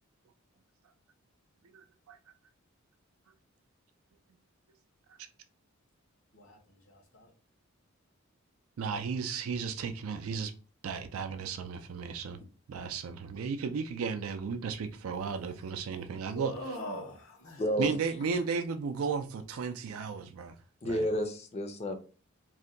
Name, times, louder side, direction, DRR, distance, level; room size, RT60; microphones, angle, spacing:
voice 1, 1.6-2.2 8.8-10.5 10.8-12.4 12.7-16.5 17.8-20.5 20.8-21.0, right 5 dB, 80° right, 0.4 m, -34 dB
voice 2, 6.9-7.3 16.3-17.6, equal, 85° left, 0.9 m, -41 dB
voice 3, 17.6-17.9 20.8-22.0, equal, 30° left, 0.4 m, -31 dB
2.7 x 2.1 x 3.7 m
head